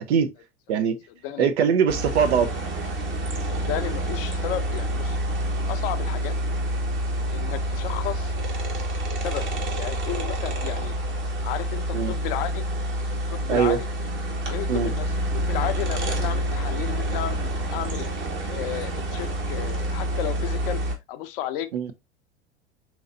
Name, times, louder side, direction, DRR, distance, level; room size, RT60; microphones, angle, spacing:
voice 1, 0.7-1.0 1.4-2.5 11.9-12.1 13.5-13.8 14.7-14.9 21.7-21.9, right 7 dB, 70° right, 0.8 m, -21 dB
sound 1, 1.9-21.0, right 1 dB, 35° right, 1.3 m, -28 dB
voice 2, 3.5-5.2 5.6-6.4 7.3-8.3 9.1-9.5 9.8-10.9 11.4-12.6 13.3-13.8 14.5-18.1 18.5-20.8 21.1-21.9, left 12 dB, 55° left, 0.6 m, -33 dB
4.7 x 2.9 x 2.6 m
figure-of-eight pair, 85°, 34 cm